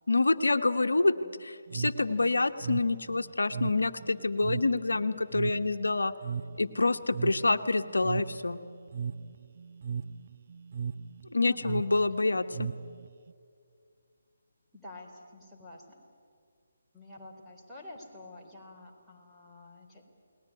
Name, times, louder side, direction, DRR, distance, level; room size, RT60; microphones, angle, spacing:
voice 1, 0.1-1.1 1.4-6.1 6.6-8.6 11.3-12.7, left 3 dB, 70° left, 8 dB, 1.2 m, -27 dB
voice 2, 1.0-1.4 11.4-11.9 14.7-16.0 16.9-20.1, left 2 dB, 5° right, -5 dB, 4.3 m, -49 dB
sound 1, 1.7-13.3, right 6 dB, 50° right, 0.7 m, -38 dB
29.0 x 20.5 x 9.8 m, 2.2 s
figure-of-eight pair, 145°, 0 cm